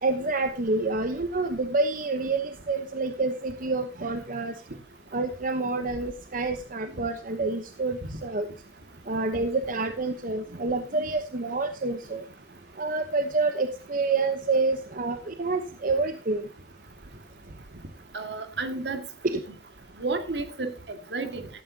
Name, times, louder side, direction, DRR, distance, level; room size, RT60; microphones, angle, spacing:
voice 1, 0.0-4.6 5.1-8.5 9.1-12.3 12.8-16.5 19.2-19.4, right 3 dB, 55° right, 1.0 m, -28 dB
voice 2, 18.1-19.0 20.0-21.5, right 3 dB, 75° right, 2.0 m, -31 dB
14.5 x 13.0 x 2.8 m
head